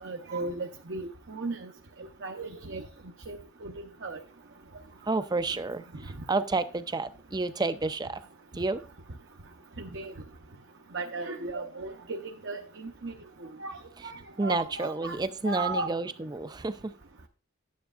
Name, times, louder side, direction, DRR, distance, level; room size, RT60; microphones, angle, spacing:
voice 1, 0.0-1.7 2.2-2.8 3.3-3.7 4.0-4.2 9.8-10.1 10.9-11.9 12.4-13.1 13.6-13.7 14.0-15.2 15.5-15.9, right 3 dB, 55° right, 2 dB, 0.8 m, -35 dB
voice 2, 5.0-8.2 8.5-8.8 14.0-14.1 14.4-16.9, right 3 dB, 20° right, 13 dB, 0.4 m, -30 dB
12.0 x 9.4 x 2.5 m, 0.37 s
head